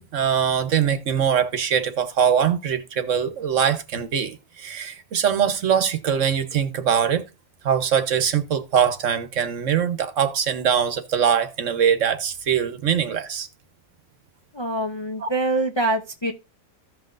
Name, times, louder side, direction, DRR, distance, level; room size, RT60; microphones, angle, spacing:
voice 1, 0.0-7.2 7.6-13.5 15.2-15.3, right 8 dB, 65° right, 1.2 m, -22 dB
voice 2, 14.5-16.3, right 2 dB, 30° left, 0.6 m, -24 dB
15.0 x 5.6 x 2.5 m
omnidirectional pair, 1.5 m